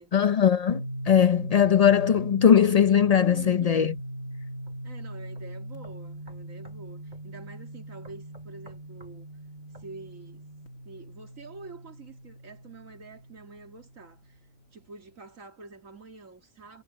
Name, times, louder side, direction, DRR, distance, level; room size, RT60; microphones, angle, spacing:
voice 1, 0.1-3.9, left 8 dB, 60° left, 0.4 m, -20 dB
sound 1, 0.7-14.3, right 1 dB, 85° left, 2.2 m, -39 dB
voice 2, 3.2-3.9 4.8-9.3 9.8-10.5 10.8-14.4 14.7-16.8, right 4 dB, 85° right, 2.9 m, -47 dB
sound 2, 4.7-4.8 5.4-5.5 5.8-6.8 7.1-7.3 8.0-9.2 9.7-9.9, right 1 dB, 35° right, 3.1 m, -54 dB
omnidirectional pair, 1.3 m